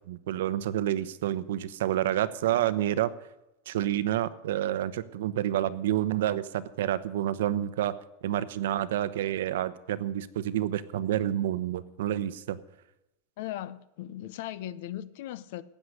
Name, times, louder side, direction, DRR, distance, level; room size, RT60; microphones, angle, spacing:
voice 1, 0.1-3.1 3.7-8.0 8.2-12.6, right 12 dB, 75° right, 1.0 m, -29 dB
voice 2, 13.4-15.6, left 13 dB, 55° left, 0.7 m, -38 dB
15.5 x 9.8 x 6.6 m
supercardioid pair, 175°, 0 cm